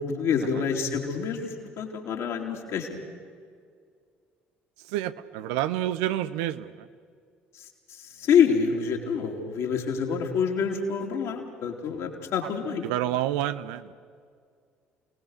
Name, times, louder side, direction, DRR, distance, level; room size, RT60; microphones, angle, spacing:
voice 1, 0.0-2.9 7.5-12.9, left 6 dB, 55° left, 2 dB, 3.3 m, -27 dB
voice 2, 4.8-6.9 12.4-12.5 12.8-13.9, right 13 dB, 70° right, 14 dB, 0.7 m, -29 dB
29.0 x 19.0 x 6.6 m, 2.1 s
figure-of-eight pair, 55°, 6 cm